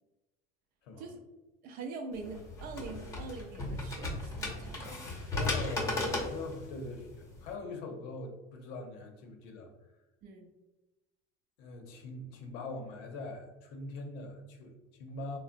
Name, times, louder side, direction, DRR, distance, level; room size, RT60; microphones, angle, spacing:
voice 1, 1.6-4.9 10.2-10.5, right 3 dB, 55° right, 5 dB, 0.5 m, -43 dB
sound 1, 2.1-7.5, left 2 dB, 15° left, 0.7 m, -36 dB
voice 2, 5.3-9.7 11.6-15.4, left 3 dB, 70° left, 3 dB, 0.6 m, -42 dB
3.7 x 2.0 x 2.5 m, 1.0 s
cardioid pair, 140°, 18 cm